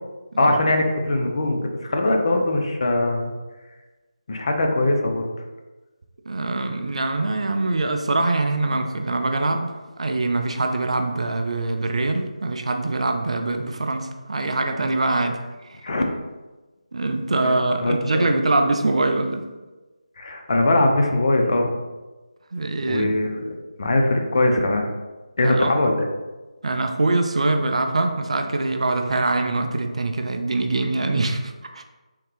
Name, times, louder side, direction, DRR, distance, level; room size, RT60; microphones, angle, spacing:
voice 1, 0.4-3.3 4.3-5.3 15.8-16.0 17.4-17.6 17.8-18.3 20.2-21.7 22.9-23.4 23.8-24.9 25.4-26.1, left 2 dB, 45° left, 3 dB, 0.5 m, -21 dB
voice 2, 6.3-15.4 16.9-19.5 22.5-23.1 25.4-25.7 26.6-31.8, right 2 dB, 55° right, 5 dB, 0.4 m, -23 dB
3.6 x 2.8 x 3.1 m, 1.2 s
figure-of-eight pair, 160°, 4 cm